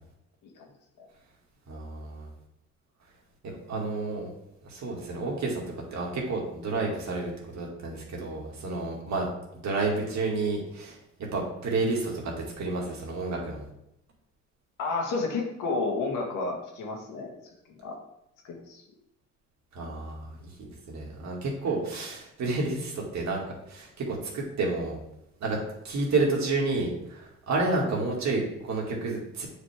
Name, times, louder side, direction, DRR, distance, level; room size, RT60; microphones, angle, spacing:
voice 1, 1.7-2.3 3.4-4.3 4.6-5.6 5.9-9.3 9.6-13.6 19.7-25.0 25.4-25.6 25.8-29.5, right 3 dB, 65° right, -1 dB, 2.3 m, -30 dB
voice 2, 14.8-17.3 17.8-18.0 18.4-18.8, left 3 dB, 85° left, 0 dB, 1.8 m, -31 dB
7.8 x 5.1 x 3.6 m, 0.81 s
cardioid pair, 90°, 30 cm